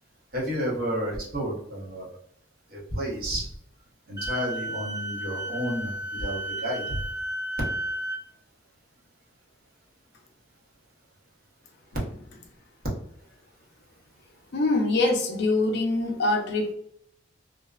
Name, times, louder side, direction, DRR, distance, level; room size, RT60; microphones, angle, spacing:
voice 1, 0.3-2.1 2.7-3.5 4.1-7.0, equal, 45° right, -5 dB, 0.9 m, -31 dB
Wind instrument woodwind instrument, 4.2-8.2, right 1 dB, 20° right, 0.6 m, -33 dB
voice 2, 14.5-16.7, left 2 dB, 55° left, 2 dB, 0.5 m, -24 dB
2.5 x 2.1 x 2.3 m, 0.67 s
head